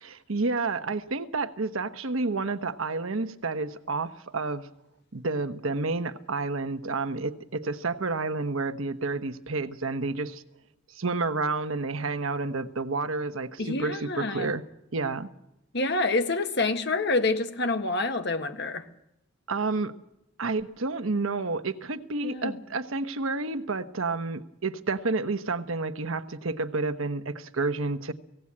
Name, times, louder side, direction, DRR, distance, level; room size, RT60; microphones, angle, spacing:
voice 1, 0.0-4.7 5.1-10.4 10.9-14.6 14.9-15.3 19.5-19.9 20.4-28.1, right 3 dB, 80° right, 10 dB, 1.1 m, -30 dB
voice 2, 13.6-14.5 15.7-18.8 22.2-22.5, left 3 dB, 55° left, 8 dB, 1.5 m, -27 dB
18.0 x 17.0 x 8.6 m, 0.84 s
head